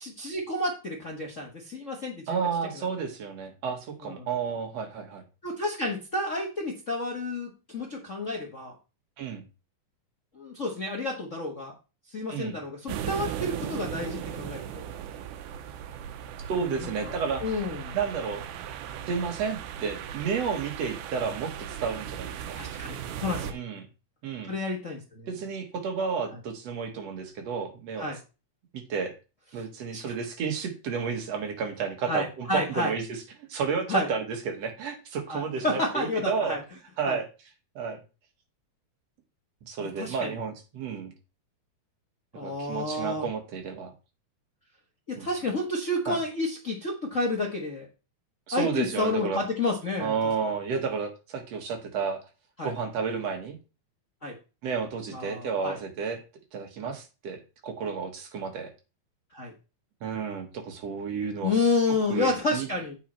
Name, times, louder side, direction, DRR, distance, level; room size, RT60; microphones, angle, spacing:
voice 1, 0.0-2.5 2.7-2.8 4.0-4.3 5.4-8.7 10.3-11.7 12.1-14.8 16.6-18.0 22.5-23.6 24.5-25.3 28.0-28.2 29.9-30.1 32.0-32.9 33.9-34.1 35.3-36.6 37.0-37.2 39.8-40.4 42.3-43.3 45.1-47.9 48.5-50.2 52.6-52.7 54.2-54.4 55.1-55.8 56.8-56.9 59.3-59.5 61.4-62.9, left 2 dB, 50° left, -1 dB, 0.8 m, -30 dB
voice 2, 2.3-5.2 9.2-9.4 12.3-12.6 16.5-17.6 17.9-18.4 19.1-22.6 23.5-23.8 24.2-24.6 25.3-28.1 28.7-29.1 29.5-36.6 37.0-37.3 37.8-38.0 39.7-41.1 42.4-43.9 45.2-45.3 46.1-46.2 48.5-49.4 50.0-52.2 52.6-53.6 54.6-56.2 56.5-58.7 60.0-61.7 62.1-62.7, right 5 dB, 60° right, 4 dB, 2.5 m, -31 dB
sound 1, 12.9-23.5, right 9 dB, 90° right, 2.3 m, -37 dB
8.4 x 5.5 x 4.4 m, 0.31 s
omnidirectional pair, 3.5 m